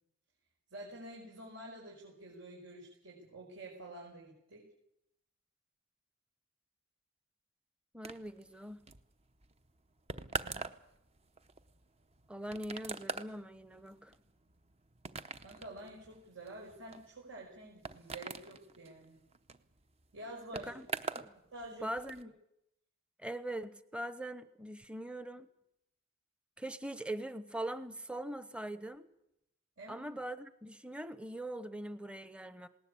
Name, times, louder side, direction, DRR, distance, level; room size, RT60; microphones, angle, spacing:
voice 1, 0.7-4.7 10.3-10.7 15.4-19.2 20.1-20.7 21.5-21.9 29.8-30.1, right 1 dB, 75° right, -4 dB, 5.6 m, -49 dB
voice 2, 7.9-8.9 12.3-14.1 20.5-20.9 21.1-21.3 21.8-22.3 23.2-25.5 26.6-29.1 29.9-32.7, right 1 dB, 5° right, 12 dB, 0.9 m, -42 dB
sound 1, 8.0-21.3 21.6-22.2, right 4 dB, 30° right, 0.8 m, -44 dB
20.0 x 18.5 x 8.5 m, 0.81 s
head